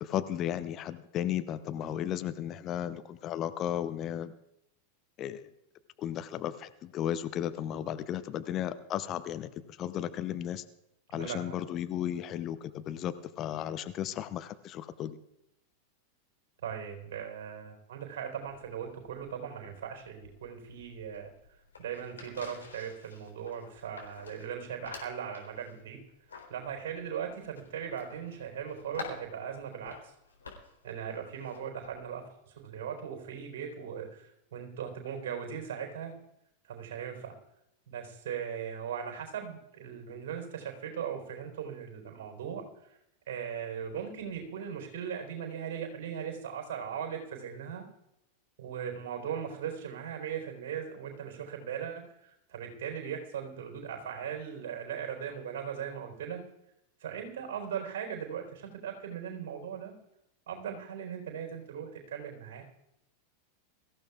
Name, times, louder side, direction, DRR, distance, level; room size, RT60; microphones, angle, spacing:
voice 1, 0.0-4.3 5.2-5.5 6.0-10.6 11.1-15.2, left 10 dB, 35° left, 11 dB, 0.7 m, -34 dB
voice 2, 11.1-11.6 16.6-21.3 21.8-26.0 26.5-30.1 30.8-36.1 36.6-37.4 37.9-42.7 43.3-47.9 48.6-56.4 57.0-59.9 60.5-62.6, right 8 dB, 55° right, 3 dB, 4.1 m, -39 dB
sound 1, 18.4-32.2, left 4 dB, 70° left, 3.8 m, -50 dB
24.0 x 14.5 x 2.4 m, 0.82 s
figure-of-eight pair, 90°, 0 cm